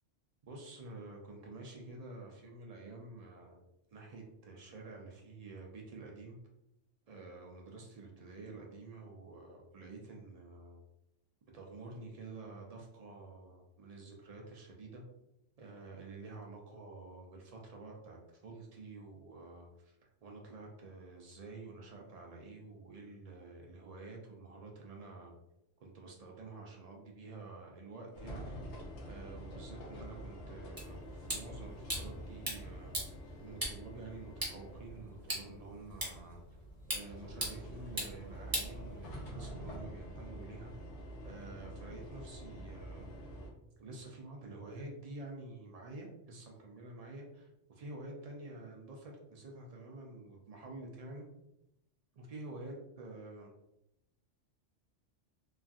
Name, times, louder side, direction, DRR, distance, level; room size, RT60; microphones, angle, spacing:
voice 1, 0.4-3.6 3.9-6.4 7.1-10.8 11.5-15.0 15.6-25.3 25.8-28.6 29.0-33.1 33.4-36.4 36.9-40.7 41.2-43.1 43.8-51.3 52.1-53.5, right 3 dB, 75° right, 0 dB, 0.3 m, -49 dB
sound 1, 28.1-43.5, equal, 70° left, 1.0 m, -47 dB
sound 2, 30.8-39.4, right 1 dB, 20° right, 0.7 m, -42 dB
3.0 x 2.5 x 2.4 m, 0.87 s
omnidirectional pair, 1.2 m